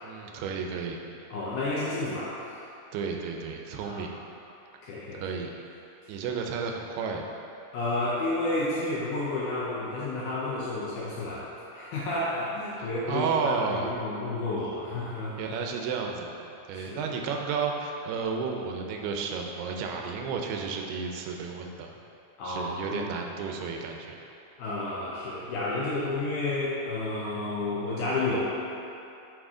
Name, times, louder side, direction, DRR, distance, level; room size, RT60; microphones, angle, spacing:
voice 1, 0.0-1.0 2.9-4.1 5.1-5.5 6.1-7.3 12.8-13.9 15.4-16.3 16.7-21.9 22.4-24.2, right 5 dB, 85° right, 2 dB, 2.6 m, -32 dB
voice 2, 1.3-2.4 3.8-4.0 4.8-5.2 6.0-6.1 7.7-11.5 11.7-15.6 16.7-17.1 22.4-23.1 24.6-28.4, left 2 dB, 75° left, -7 dB, 1.9 m, -31 dB
7.2 x 6.0 x 3.7 m, 2.8 s
omnidirectional pair, 4.5 m